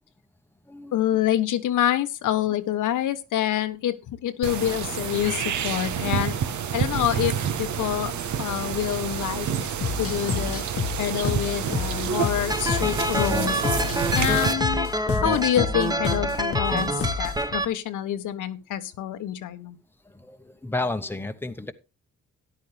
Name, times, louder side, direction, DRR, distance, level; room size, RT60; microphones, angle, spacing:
voice 1, 0.9-6.3 6.7-8.1 8.4-9.7 10.0-10.6 11.0-19.8, left 11 dB, 85° left, 1.1 m, -27 dB
sound 1, 4.4-14.5, right 8 dB, 75° right, 1.2 m, -29 dB
sound 2, 9.8-17.4, left 7 dB, 50° left, 1.0 m, -30 dB
sound 3, 12.5-17.6, right 1 dB, 15° right, 1.2 m, -26 dB
voice 2, 20.1-21.7, left 2 dB, 5° left, 1.0 m, -31 dB
13.0 x 10.0 x 3.3 m
cardioid pair, 100°, 30 cm